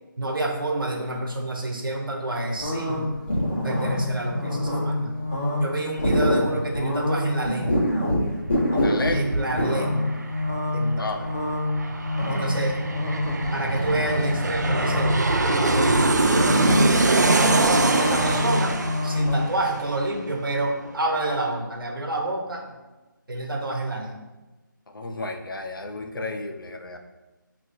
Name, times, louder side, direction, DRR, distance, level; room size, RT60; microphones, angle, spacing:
voice 1, 0.2-3.1 3.6-5.2 5.6-7.8 9.1-10.2 10.7-11.3 12.3-12.8 13.5-15.2 15.7-16.9 17.9-18.8 19.0-22.8 23.3-24.2, right 2 dB, 80° right, 1 dB, 1.0 m, -28 dB
sound 1, 2.6-19.4, left 1 dB, 35° left, 1.3 m, -26 dB
voice 2, 8.7-9.3 11.0-11.3 24.9-27.0, left 2 dB, 80° left, 5 dB, 0.7 m, -32 dB
Aircraft, 8.9-9.0 9.2-20.6 20.9-21.0, right 2 dB, 55° right, 0.4 m, -24 dB
6.2 x 3.0 x 2.7 m, 1.1 s
figure-of-eight pair, 180°, 11 cm